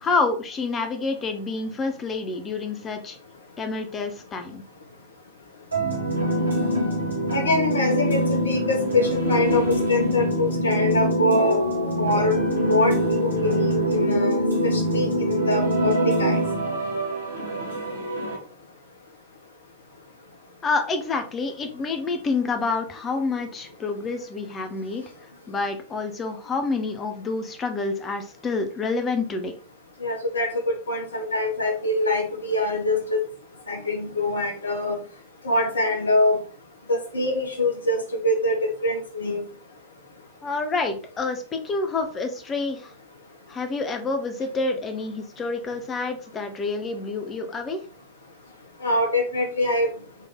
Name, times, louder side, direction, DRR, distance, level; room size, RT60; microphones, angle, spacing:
voice 1, 0.0-3.2 3.6-4.6 20.6-25.0 25.5-29.5 40.4-42.9 43.5-47.8, left 3 dB, 25° left, 6 dB, 0.9 m, -28 dB
sound 1, 5.7-18.4, equal, 80° right, 1.3 m, -24 dB
voice 2, 7.3-11.6 12.0-12.3 12.7-14.4 14.7-16.4 30.0-33.2 33.7-35.0 35.4-36.4 36.9-39.4 48.8-49.9, left 2 dB, 70° left, 4 dB, 1.0 m, -24 dB
4.2 x 3.3 x 3.7 m, 0.41 s
figure-of-eight pair, 90°, 0 cm